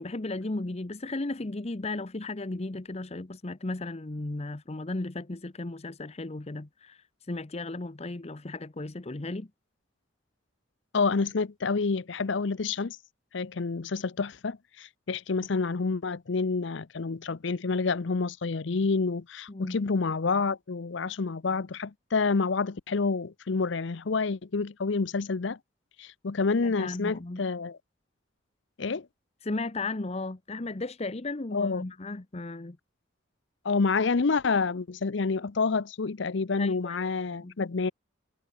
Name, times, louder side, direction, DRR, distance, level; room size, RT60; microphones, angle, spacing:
voice 1, 0.0-9.5 19.5-19.8 26.6-27.4 29.4-32.8 36.6-37.0 37.3-37.5, left 2 dB, 30° left, 0.8 m, -35 dB
voice 2, 10.9-13.0 13.3-25.6 26.0-27.8 28.8-29.1 31.5-31.8 33.6-37.9, left 4 dB, 65° left, 0.6 m, -28 dB
head